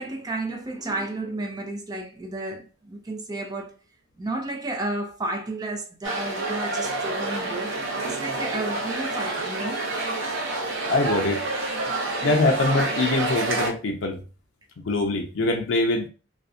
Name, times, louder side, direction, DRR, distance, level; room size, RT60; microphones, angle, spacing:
voice 1, 0.0-3.7 4.2-7.8 8.0-9.8, right 2 dB, 20° right, 0.4 m, -32 dB
sound 1, 6.0-13.7, right 2 dB, 80° right, 0.6 m, -28 dB
voice 2, 10.9-11.4 12.2-14.2 14.8-16.1, left 2 dB, 75° left, 0.4 m, -23 dB
2.6 x 2.1 x 2.3 m
head